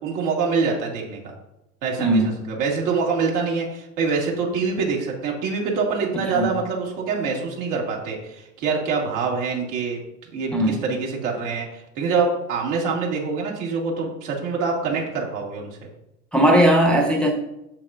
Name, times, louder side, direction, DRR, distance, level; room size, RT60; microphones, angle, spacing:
voice 1, 0.0-1.3 1.8-10.0 10.3-15.9, right 4 dB, 65° right, -2 dB, 2.3 m, -25 dB
voice 2, 2.0-2.4 6.3-6.5 10.5-10.8 16.3-17.3, right 1 dB, ahead, 1 dB, 0.9 m, -18 dB
7.4 x 6.8 x 2.5 m, 0.87 s
hypercardioid pair, 85°, 43 cm